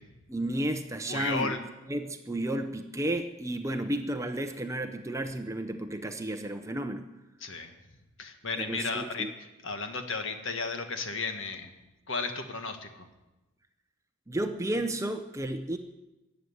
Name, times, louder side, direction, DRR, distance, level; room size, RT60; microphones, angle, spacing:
voice 1, 0.3-1.6 1.9-7.0 8.6-9.3 14.3-15.8, right 1 dB, 15° right, 7 dB, 0.6 m, -32 dB
voice 2, 1.1-1.6 7.4-7.7 8.2-9.3 9.6-11.7 12.1-13.1, left 4 dB, 60° left, 6 dB, 1.6 m, -34 dB
15.0 x 7.9 x 9.9 m, 1.1 s
head